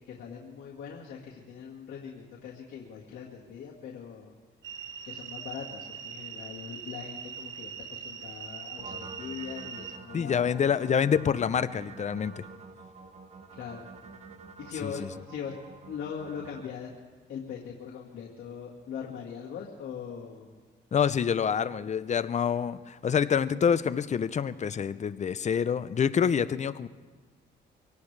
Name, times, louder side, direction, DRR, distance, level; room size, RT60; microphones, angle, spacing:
voice 1, 0.1-4.3 5.0-10.6 13.5-13.9 14.6-15.6 15.9-16.9 17.3-20.6, left 7 dB, 75° left, -4 dB, 1.8 m, -41 dB
sound 1, 4.6-10.0, right 7 dB, 70° right, 0.9 m, -41 dB
sound 2, 8.8-16.6, right 4 dB, 35° right, 1.3 m, -48 dB
voice 2, 10.1-12.5 14.8-15.1 20.9-26.9, left 7 dB, 35° left, 14 dB, 0.6 m, -27 dB
24.0 x 17.5 x 3.3 m, 1.4 s
cardioid pair, 90°, 20 cm